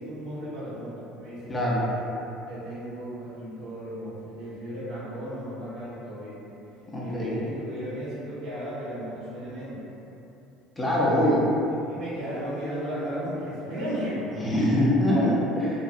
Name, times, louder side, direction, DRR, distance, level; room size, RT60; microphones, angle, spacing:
voice 1, 0.0-6.4 7.0-9.8 11.9-14.4 15.1-15.3, equal, 70° right, -10 dB, 1.4 m, -35 dB
voice 2, 1.5-1.8 6.9-7.4 10.8-11.5 14.4-15.4 15.6-15.7, left 1 dB, 10° left, -6 dB, 0.5 m, -23 dB
3.9 x 2.4 x 2.4 m, 2.9 s
cardioid pair, 135°, 0 cm